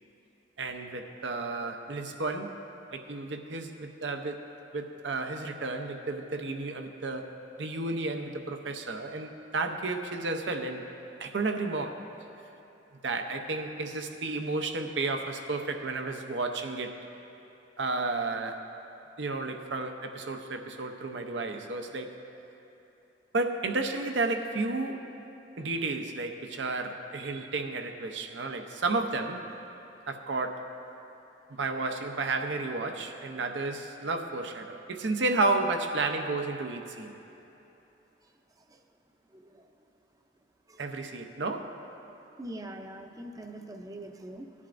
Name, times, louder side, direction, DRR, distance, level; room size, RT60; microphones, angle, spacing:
voice 1, 0.6-2.5 2.9-4.4 4.7-10.9 11.2-12.0 13.0-17.0 17.8-18.6 19.2-22.2 23.3-25.1 25.6-29.4 30.1-30.7 31.5-37.1 40.8-41.8, right 3 dB, 85° right, 5 dB, 0.7 m, -32 dB
voice 2, 39.3-39.6 40.7-40.8 42.4-44.5, right 1 dB, 20° right, 5 dB, 0.5 m, -42 dB
17.5 x 11.0 x 2.6 m, 3.0 s
head